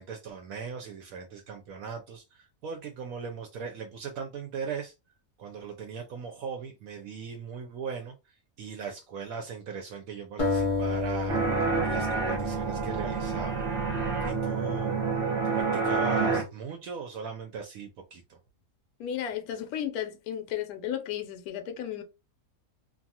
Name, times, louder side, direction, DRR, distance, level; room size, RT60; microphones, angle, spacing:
voice 1, 0.0-4.9 5.4-8.2 8.6-13.7 14.0-15.0 15.4-18.4, right 6 dB, 70° right, 0.9 m, -39 dB
sound 1, 10.4-13.6, left 3 dB, 35° left, 0.5 m, -31 dB
sound 2, 11.3-16.5, right 4 dB, 40° right, 1.0 m, -28 dB
voice 2, 19.0-22.0, left 10 dB, 75° left, 1.1 m, -34 dB
2.6 x 2.3 x 2.7 m
omnidirectional pair, 1.6 m